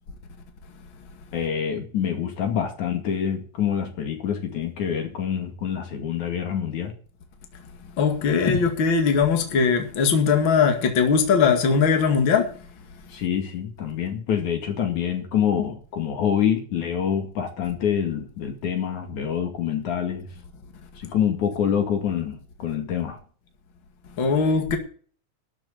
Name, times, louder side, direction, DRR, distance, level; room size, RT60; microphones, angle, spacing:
voice 1, 1.3-6.9 13.1-20.3 21.0-23.2, left 8 dB, 70° left, 3.6 m, -26 dB
voice 2, 8.0-12.5 24.2-24.8, left 5 dB, 40° left, 2.6 m, -20 dB
13.0 x 6.7 x 8.1 m
omnidirectional pair, 3.6 m